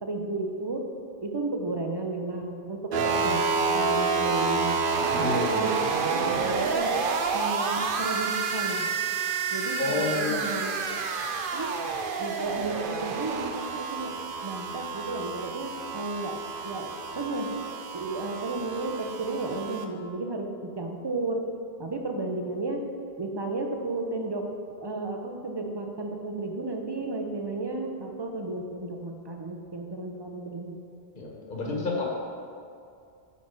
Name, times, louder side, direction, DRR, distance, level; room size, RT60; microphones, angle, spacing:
voice 1, 0.0-0.9 1.2-3.4 3.7-4.8 5.2-7.1 7.3-8.9 9.5-11.0 11.5-11.9 12.2-14.2 14.4-16.4 16.6-17.6 17.9-21.5 21.8-22.8 23.2-24.5 24.8-30.8 31.9-32.0, right 2 dB, 30° right, 3 dB, 0.7 m, -33 dB
sound 1, 2.9-19.9, right 4 dB, 60° right, 0.8 m, -29 dB
voice 2, 5.1-5.4 9.8-10.5 31.1-32.0, left 3 dB, 50° left, -1 dB, 1.4 m, -30 dB
9.2 x 4.1 x 6.4 m, 2.4 s
omnidirectional pair, 1.1 m